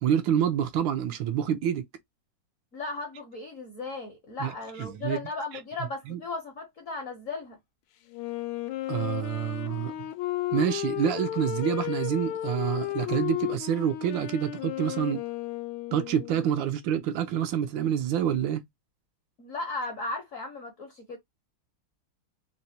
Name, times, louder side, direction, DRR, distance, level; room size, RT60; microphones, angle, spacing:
voice 1, 0.0-1.8 4.4-4.5 4.8-5.2 6.1-6.2 8.9-10.1 10.5-15.2 15.9-18.6, right 9 dB, 75° right, 1.2 m, -27 dB
voice 2, 2.7-7.6 19.4-21.2, left 3 dB, 60° left, 0.9 m, -36 dB
Wind instrument woodwind instrument, 8.1-16.7, left 15 dB, 80° left, 1.3 m, -33 dB
4.0 x 2.1 x 2.6 m
omnidirectional pair, 2.2 m